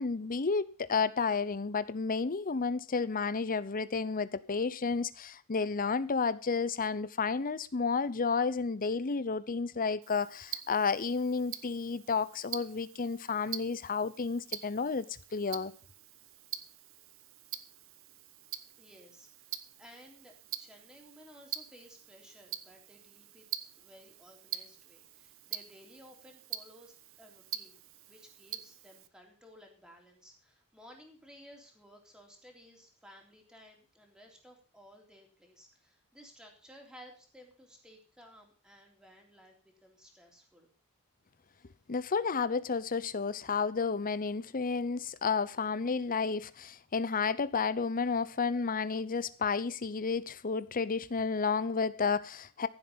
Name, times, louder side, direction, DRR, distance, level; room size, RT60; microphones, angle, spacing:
voice 1, 0.0-15.1 15.3-15.7 41.9-52.7, left 5 dB, 40° left, 0.7 m, -31 dB
Tick-tock, 10.0-29.1, right 11 dB, 65° right, 1.0 m, -45 dB
voice 2, 18.8-23.5 23.8-27.8 28.1-40.7, equal, 5° right, 3.5 m, -57 dB
15.0 x 7.8 x 5.5 m
head